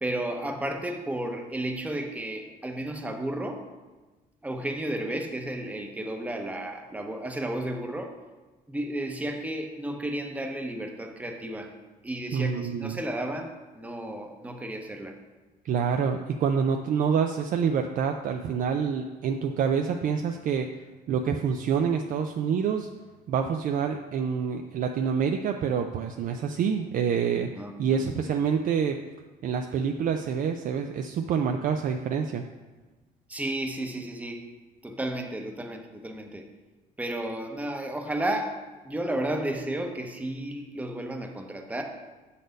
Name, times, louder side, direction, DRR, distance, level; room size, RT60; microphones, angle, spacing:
voice 1, 0.0-3.7 4.4-8.1 8.7-11.7 12.0-15.2 27.6-28.1 33.3-34.5 34.8-36.5 37.0-38.6 38.8-41.8, right 1 dB, 10° right, 3 dB, 0.8 m, -33 dB
voice 2, 12.3-13.0 15.6-20.7 21.1-22.9 23.3-27.5 27.8-29.0 29.4-32.5, right 7 dB, 55° right, 5 dB, 0.4 m, -27 dB
6.5 x 4.1 x 5.2 m, 1.2 s
cardioid pair, 110°, 17 cm